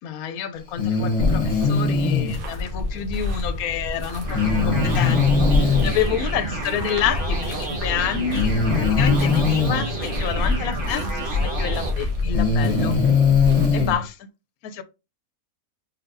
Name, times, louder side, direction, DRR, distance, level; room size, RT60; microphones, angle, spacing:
voice 1, 0.0-5.2 5.5-13.0 13.7-14.1 14.6-14.8, left 8 dB, 80° left, 1.1 m, -29 dB
Breathing, 0.8-2.4 4.3-5.9 7.3-7.4 8.3-9.9 11.4-11.5 12.2-14.0, left 5 dB, 30° left, 1.3 m, -20 dB
sound 1, 1.2-13.9, left 2 dB, 70° right, 1.6 m, -27 dB
sound 2, 4.3-11.9, right 2 dB, 35° right, 1.4 m, -30 dB
4.2 x 4.0 x 2.6 m
omnidirectional pair, 1.6 m